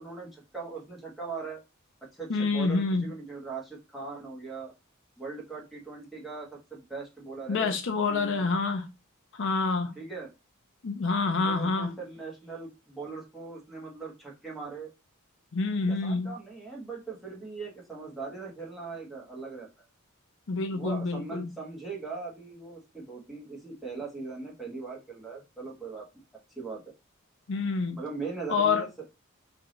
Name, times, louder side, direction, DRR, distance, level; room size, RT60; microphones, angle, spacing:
voice 1, 0.0-1.6 2.1-4.7 5.2-7.8 8.1-8.5 9.9-10.3 11.4-14.9 15.8-19.8 20.7-26.0 26.5-26.8 27.6-28.9, right 4 dB, ahead, 1.3 m, -40 dB
voice 2, 2.3-3.1 7.5-8.8 9.4-9.9 10.8-11.9 15.5-16.3 20.5-21.5 27.5-28.0 28.5-28.9, left 4 dB, 60° left, 0.6 m, -27 dB
3.3 x 2.9 x 3.8 m
head